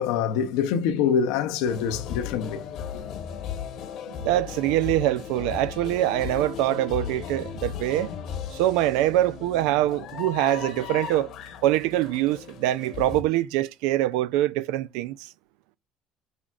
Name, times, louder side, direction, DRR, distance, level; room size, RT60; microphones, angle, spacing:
voice 1, 0.0-2.6, left 7 dB, 85° left, 0.7 m, -25 dB
sound 1, 1.7-13.2, left 8 dB, 60° left, 1.0 m, -36 dB
voice 2, 4.2-8.1 8.5-11.3 11.6-15.3, right 14 dB, 85° right, 0.4 m, -24 dB
5.7 x 3.6 x 2.4 m
cardioid pair, 130°, 0 cm